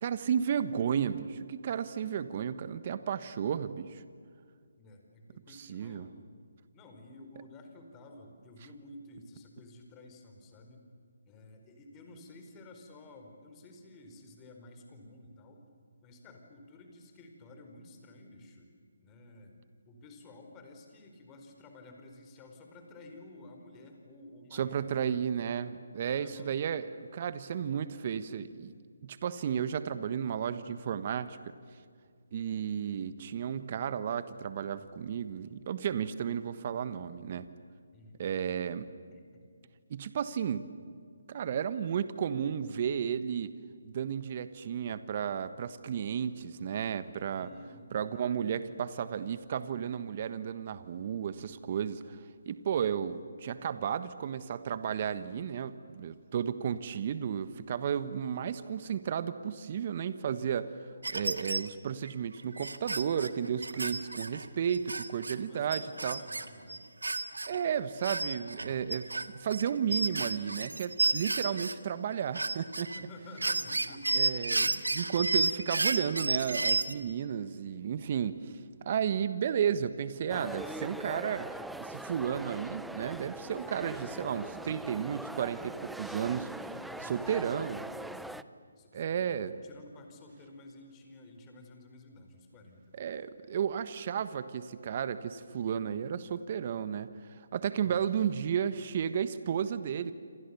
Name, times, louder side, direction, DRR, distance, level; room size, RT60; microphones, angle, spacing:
voice 1, 0.0-4.0 5.7-6.0 24.5-28.7 29.0-31.4 32.3-37.4 38.2-38.8 39.9-40.6 41.3-43.5 43.8-47.5 47.9-52.2 52.4-60.7 61.1-66.2 67.5-72.9 74.1-78.5 78.8-86.5 87.0-87.8 88.9-89.5 93.0-97.1 97.5-100.1, right 8 dB, 40° right, 13 dB, 1.3 m, -33 dB
voice 2, 4.8-6.3 6.7-10.9 11.3-15.7 16.0-18.7 19.0-19.6 19.8-25.3 26.1-26.5 37.9-38.2 39.1-39.5 47.3-48.3 63.7-64.1 65.3-66.8 72.9-74.3 86.8-88.4 88.8-93.0 97.8-98.0, left 2 dB, 20° left, 4 dB, 4.8 m, -52 dB
sound 1, 61.0-61.7 62.1-62.2 62.6-65.4 65.7-67.6 68.0-71.7 72.1-73.0 73.4-76.9, right 3 dB, 85° right, 1.7 m, -32 dB
sound 2, 80.3-88.4, right 1 dB, ahead, 0.6 m, -42 dB
28.0 x 27.0 x 7.1 m, 2.2 s
figure-of-eight pair, 150°, 0 cm